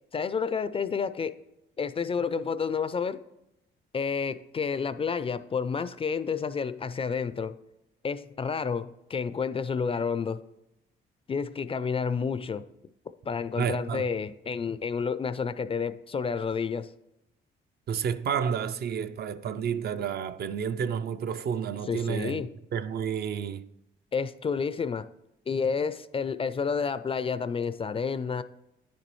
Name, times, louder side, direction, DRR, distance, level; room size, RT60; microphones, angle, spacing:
voice 1, 0.1-1.4 1.8-3.2 3.9-7.5 8.0-10.4 11.3-12.7 13.2-16.9 21.9-22.5 24.1-25.1 25.5-28.4, left 5 dB, 30° left, 0.3 m, -30 dB
voice 2, 13.6-14.1 17.9-22.4 22.7-23.7, right 7 dB, 55° right, 0.4 m, -30 dB
9.7 x 6.8 x 3.1 m
cardioid pair, 90°, 20 cm